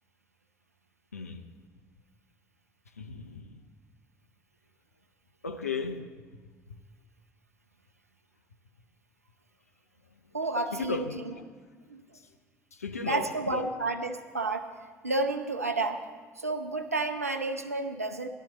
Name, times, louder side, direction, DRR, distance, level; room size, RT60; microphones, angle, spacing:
voice 1, 1.1-1.4 2.9-3.6 5.4-6.1 6.7-6.8 10.7-11.4 12.1-12.3 12.7-13.7, left 4 dB, 85° left, 0.5 m, -36 dB
voice 2, 10.3-11.3 11.9-12.0 13.0-14.7 15.0-16.0 16.4-18.3, right 2 dB, 90° right, 0.6 m, -31 dB
15.0 x 12.0 x 4.0 m
figure-of-eight pair, 55°, 8 cm